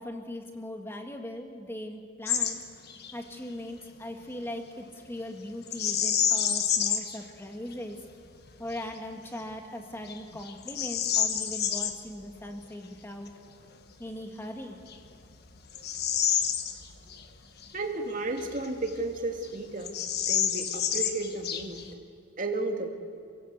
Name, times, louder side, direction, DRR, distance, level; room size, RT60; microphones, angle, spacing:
voice 1, 0.0-2.6 3.1-8.0 8.6-13.3 14.0-14.8, left 1 dB, 10° left, 4 dB, 2.0 m, -39 dB
Bird vocalization bird call bird song, 2.3-2.6 2.9-3.1 5.7-7.2 7.7-7.8 8.4-8.8 9.4-9.5 10.1-12.0 14.1-14.2 14.8-17.2 17.6-17.7 18.4-19.2 19.4-19.5 19.8-21.9, left 9 dB, 55° left, 1.4 m, -29 dB
voice 2, 17.7-20.0 20.2-21.8 22.4-22.9, right 2 dB, 40° right, 3 dB, 2.3 m, -33 dB
27.5 x 17.0 x 8.2 m, 2.2 s
head